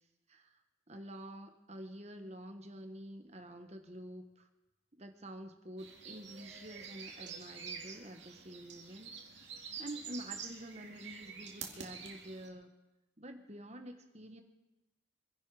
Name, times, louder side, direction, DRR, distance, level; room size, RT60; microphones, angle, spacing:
voice 1, 0.9-4.5 4.9-12.7 13.2-14.4, right 1 dB, 35° right, 6 dB, 1.4 m, -48 dB
sound 1, 5.8-12.5, right 6 dB, 60° right, 2.3 m, -47 dB
24.5 x 11.0 x 5.0 m, 1.0 s
head